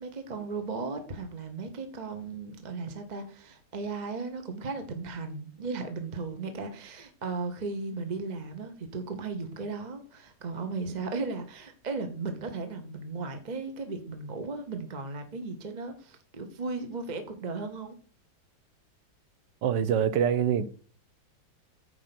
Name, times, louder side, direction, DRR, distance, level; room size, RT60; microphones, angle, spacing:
voice 1, 0.0-18.0, right 4 dB, 30° right, 0.9 m, -36 dB
voice 2, 19.6-20.7, right 8 dB, 70° right, 1.3 m, -25 dB
9.3 x 4.9 x 5.9 m
omnidirectional pair, 2.2 m